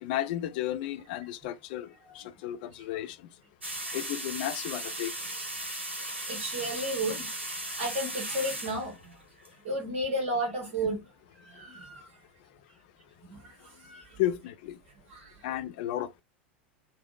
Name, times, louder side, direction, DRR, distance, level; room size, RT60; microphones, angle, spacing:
voice 1, 0.0-3.2 3.9-5.1 14.2-14.8 15.4-16.2, left 13 dB, 50° left, 0.3 m, -33 dB
sound 1, 3.6-9.5, right 1 dB, 80° right, 0.7 m, -37 dB
voice 2, 6.3-7.3 7.8-9.1 9.6-11.0 11.4-12.2 13.2-14.2 15.1-15.5, right 1 dB, 50° right, 1.0 m, -33 dB
3.2 x 2.0 x 2.3 m
figure-of-eight pair, 85°, 6 cm